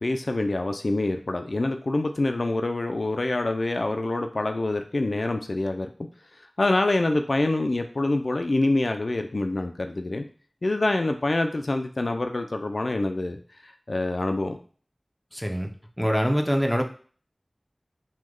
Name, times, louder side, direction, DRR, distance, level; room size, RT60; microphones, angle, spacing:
voice 1, 0.0-5.9 6.6-10.2 10.6-14.6, left 2 dB, 75° left, 5 dB, 0.3 m, -26 dB
voice 2, 15.3-15.7 16.0-16.8, equal, 5° left, 3 dB, 0.5 m, -24 dB
3.1 x 2.2 x 3.5 m, 0.42 s
wide cardioid pair, 50°, 0 cm